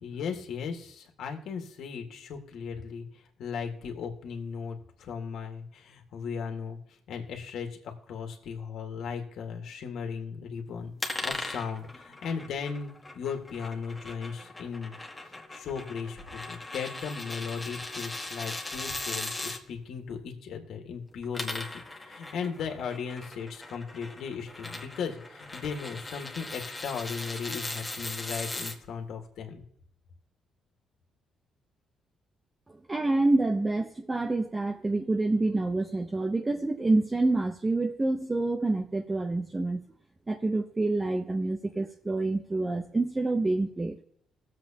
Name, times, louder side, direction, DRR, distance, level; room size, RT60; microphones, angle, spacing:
voice 1, 0.0-3.1 3.4-6.8 7.1-10.9 11.2-15.0 15.5-29.6, left 6 dB, 75° left, 4 dB, 1.8 m, -37 dB
sound 1, 11.0-19.6 21.1-28.8, left 2 dB, 15° left, 1.4 m, -39 dB
voice 2, 32.9-39.8 40.3-44.0, right 2 dB, 20° right, 4 dB, 0.8 m, -27 dB
20.0 x 7.6 x 2.9 m, 0.72 s
cardioid pair, 90°, 0 cm